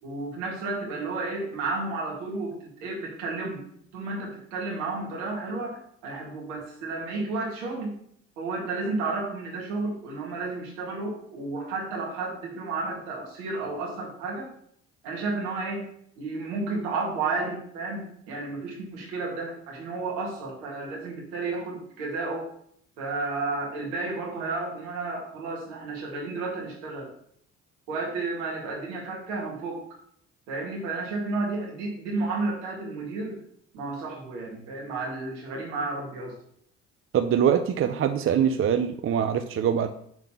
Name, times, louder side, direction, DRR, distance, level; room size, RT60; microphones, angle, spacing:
voice 1, 0.0-2.5 2.8-3.6 3.9-8.0 8.4-14.5 15.0-15.9 16.2-22.5 23.0-27.1 27.9-29.8 30.5-33.4 33.7-36.3, right 3 dB, 75° right, -1 dB, 2.1 m, -32 dB
voice 2, 37.1-39.9, right 8 dB, 35° right, 8 dB, 0.6 m, -23 dB
6.7 x 4.0 x 5.6 m, 0.67 s
hypercardioid pair, 55°, 36 cm